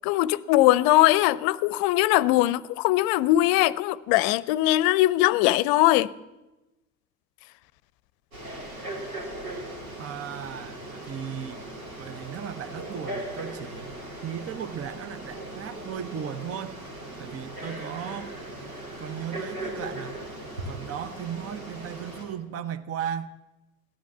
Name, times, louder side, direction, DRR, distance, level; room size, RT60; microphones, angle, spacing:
voice 1, 0.0-6.1, left 16 dB, 55° left, 0.6 m, -21 dB
Frog, 8.3-22.2, right 1 dB, 90° right, 3.8 m, -38 dB
voice 2, 10.0-11.6 12.0-14.0 14.2-16.8 17.2-18.3 19.0-20.2 20.7-23.4, right 9 dB, 35° right, 0.9 m, -36 dB
16.5 x 10.5 x 7.3 m
hypercardioid pair, 70°, 41 cm